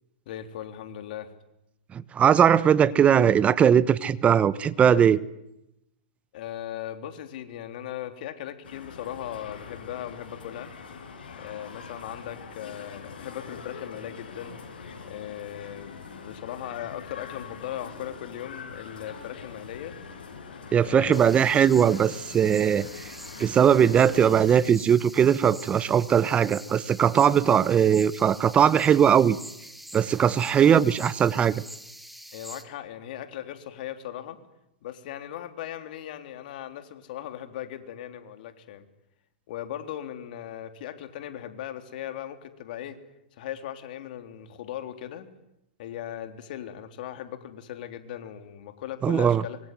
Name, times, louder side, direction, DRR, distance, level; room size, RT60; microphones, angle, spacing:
voice 1, 0.3-1.3 6.3-10.7 11.4-14.5 15.1-20.0 20.8-21.3 32.3-34.4 34.8-38.9 39.5-43.0 43.3-45.3 45.8-49.6, left 11 dB, 65° left, 8 dB, 3.6 m, -38 dB
voice 2, 2.2-5.2 20.7-22.9 23.4-29.4 29.9-31.6 49.0-49.4, right 8 dB, 25° right, 18 dB, 1.1 m, -20 dB
sound 1, 8.6-24.6, left 5 dB, 80° left, 6.4 m, -43 dB
sound 2, 21.1-32.6, right 1 dB, ahead, 2.8 m, -45 dB
25.0 x 24.0 x 9.4 m, 0.86 s
hypercardioid pair, 115°, 5 cm